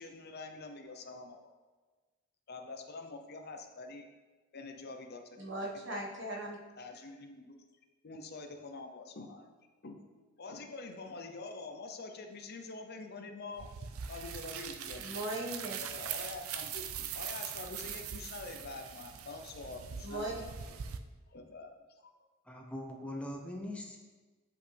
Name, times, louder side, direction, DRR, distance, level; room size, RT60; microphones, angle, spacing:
voice 1, 0.0-1.5 2.5-4.1 4.5-6.0 6.8-7.6 8.0-9.5 9.8-10.0 10.4-13.7 14.1-15.2 15.8-20.4 20.7-20.8 21.3-22.1, left 3 dB, 50° left, 5 dB, 0.6 m, -46 dB
voice 2, 5.4-6.6 15.0-15.8 20.0-20.3, right 1 dB, 60° right, -3 dB, 1.3 m, -38 dB
sound 1, 13.6-21.0, right 8 dB, 90° right, 0.5 m, -42 dB
voice 3, 22.5-24.0, left 1 dB, 5° left, 1 dB, 0.6 m, -41 dB
8.0 x 5.2 x 3.3 m, 1.3 s
head